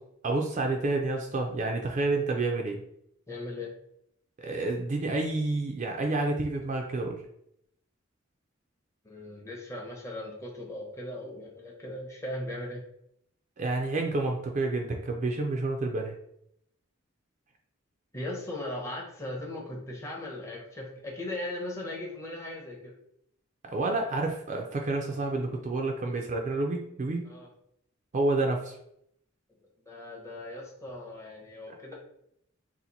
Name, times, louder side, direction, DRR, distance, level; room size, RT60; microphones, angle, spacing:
voice 1, 0.2-2.8 4.4-7.2 13.6-16.2 23.6-27.3 28.1-28.8 31.7-31.8, right 2 dB, 40° right, 2 dB, 0.4 m, -29 dB
voice 2, 3.3-3.7 9.0-12.8 18.1-22.9 27.3-27.5 29.9-31.9, left 1 dB, 15° left, -2 dB, 0.7 m, -38 dB
2.8 x 2.5 x 3.9 m, 0.74 s
head